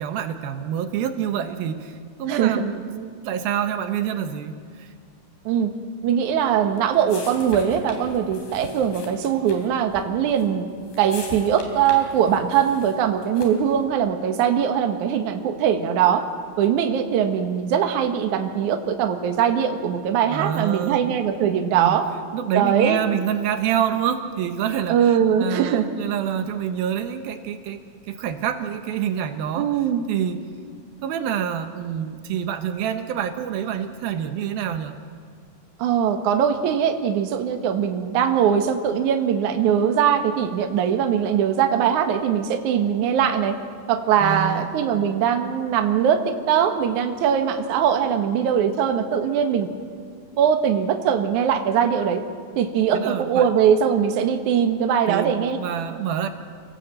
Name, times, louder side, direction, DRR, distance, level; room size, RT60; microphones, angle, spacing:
voice 1, 0.0-4.9 20.3-21.1 21.7-22.0 22.3-29.7 30.1-30.4 31.0-35.0 44.2-44.7 52.9-53.5 55.1-56.3, right 9 dB, 80° right, 7 dB, 2.8 m, -27 dB
voice 2, 2.3-2.6 5.5-5.7 6.0-10.7 11.0-16.2 16.6-22.1 22.6-23.0 24.9-25.9 29.6-30.1 35.8-43.6 43.9-49.7 50.4-52.2 52.6-55.6, right 8 dB, 60° right, 5 dB, 2.5 m, -21 dB
sound 1, 6.3-13.8, left 4 dB, 80° left, 5.2 m, -41 dB
28.5 x 18.0 x 7.7 m, 2.1 s
omnidirectional pair, 4.3 m